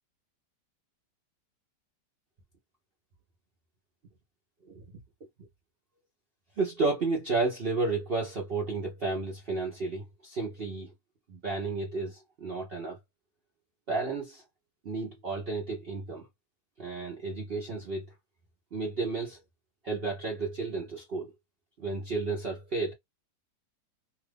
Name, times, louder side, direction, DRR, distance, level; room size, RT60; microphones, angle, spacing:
voice 1, 6.6-10.9 11.3-13.0 13.9-14.4 14.8-16.3 16.8-18.1 18.7-19.4 19.8-21.3 21.8-22.9, right 3 dB, 50° right, 0.8 m, -32 dB
2.8 x 2.4 x 3.3 m
omnidirectional pair, 1.8 m